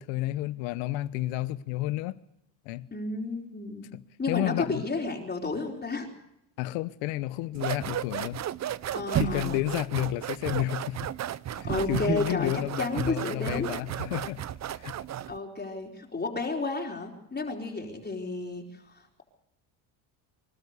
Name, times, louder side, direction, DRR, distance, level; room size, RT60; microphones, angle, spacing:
voice 1, 0.0-2.2 2.6-2.9 4.3-4.8 6.6-8.4 9.1-11.1 11.5-14.4 14.8-14.9, left 16 dB, 90° left, 1.0 m, -31 dB
voice 2, 2.9-3.9 4.2-6.1 8.9-9.6 11.6-12.5 12.8-14.0 15.3-19.2, left 3 dB, 25° left, 4.5 m, -32 dB
sound 1, 7.5-15.4, right 10 dB, 40° right, 0.7 m, -33 dB
26.0 x 12.5 x 8.2 m
supercardioid pair, 95°, 43 cm